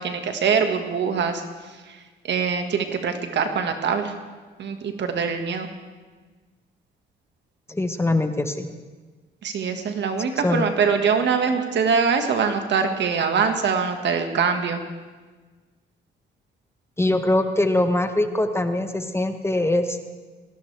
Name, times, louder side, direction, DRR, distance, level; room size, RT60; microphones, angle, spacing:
voice 1, 0.0-1.4 1.9-2.0 2.2-4.2 4.6-5.7 9.4-14.8, right 6 dB, 65° right, 6 dB, 1.7 m, -23 dB
voice 2, 7.7-8.7 10.4-10.7 17.0-20.0, left 1 dB, 10° left, 7 dB, 1.1 m, -22 dB
20.0 x 16.5 x 3.4 m, 1.4 s
cardioid pair, 90°, 20 cm